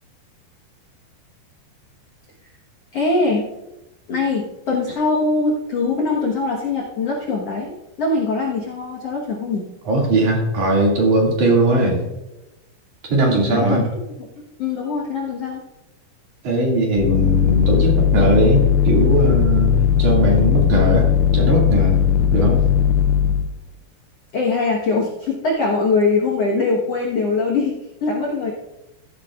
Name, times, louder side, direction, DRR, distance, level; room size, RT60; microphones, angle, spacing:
voice 1, 2.9-3.5 4.1-9.6 13.5-13.9 14.6-15.6 24.3-28.5, left 3 dB, 65° left, -2 dB, 1.5 m, -22 dB
voice 2, 9.9-12.0 13.1-13.8 16.4-21.1 21.3-22.0 22.3-22.6, right 2 dB, 50° right, -2 dB, 3.4 m, -19 dB
sound 1, 17.0-23.5, left 9 dB, 85° left, 2.2 m, -17 dB
14.5 x 11.5 x 2.4 m, 0.96 s
omnidirectional pair, 4.9 m